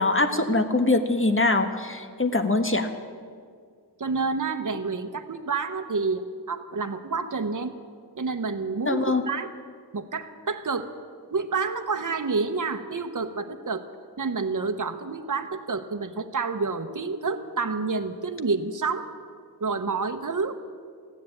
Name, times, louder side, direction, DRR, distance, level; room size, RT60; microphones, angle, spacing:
voice 1, 0.0-2.9 8.9-9.2, left 2 dB, 30° left, 7 dB, 1.2 m, -23 dB
voice 2, 4.0-7.7 8.2-9.5 9.9-10.9 11.3-13.8 14.2-19.1 19.6-20.5, right 4 dB, 50° right, 7 dB, 0.9 m, -29 dB
15.0 x 10.0 x 8.7 m, 2.1 s
wide cardioid pair, 40°, 40 cm